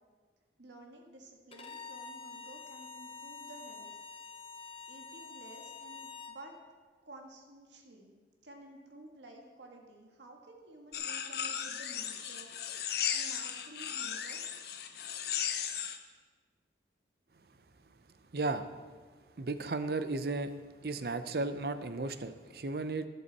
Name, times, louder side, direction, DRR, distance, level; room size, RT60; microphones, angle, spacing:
voice 1, 0.6-3.9 4.9-6.5 7.0-8.1 8.4-14.4, right 1 dB, 90° right, 2 dB, 1.6 m, -53 dB
Bowed string instrument, 1.5-6.4, left 4 dB, 30° left, 0.8 m, -47 dB
sound 1, 10.9-16.0, left 9 dB, 65° left, 0.8 m, -36 dB
voice 2, 18.3-18.7 19.4-20.5 20.8-23.1, right 3 dB, 55° right, 11 dB, 0.6 m, -34 dB
12.0 x 11.5 x 4.2 m, 1.5 s
head